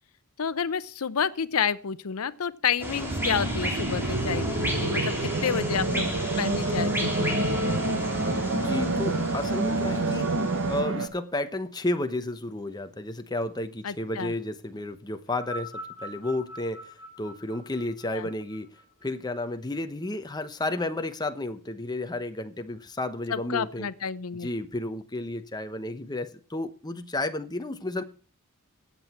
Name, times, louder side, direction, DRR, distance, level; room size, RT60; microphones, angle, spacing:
voice 1, 0.4-6.1 6.4-7.4 13.8-14.3 18.1-18.3 23.3-24.5, left 7 dB, 90° left, 0.7 m, -30 dB
sound 1, 2.8-10.8, equal, 10° right, 3.9 m, -33 dB
sound 2, 3.1-11.1, right 2 dB, 60° right, 1.2 m, -28 dB
voice 2, 8.5-10.3 10.7-16.8 17.2-18.7 19.0-23.9 24.4-28.0, left 2 dB, 20° left, 1.0 m, -32 dB
sound 3, 15.3-19.8 20.7-20.8, equal, 40° left, 6.7 m, -43 dB
15.5 x 8.0 x 4.4 m
head